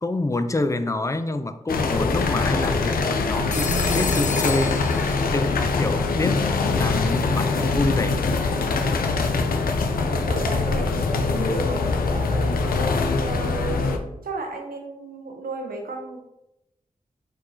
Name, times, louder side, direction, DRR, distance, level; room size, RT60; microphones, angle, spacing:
voice 1, 0.0-4.9 5.3-8.4, left 2 dB, 20° left, 10 dB, 0.4 m, -27 dB
sound 1, 1.7-14.0, left 4 dB, 90° left, 0.4 m, -23 dB
Telephone, 3.5-5.6, left 5 dB, 55° left, 0.7 m, -31 dB
voice 2, 10.0-12.5 13.1-16.2, right 2 dB, 85° right, 1 dB, 0.9 m, -33 dB
4.4 x 2.4 x 4.3 m, 0.90 s
cardioid pair, 40°, 15 cm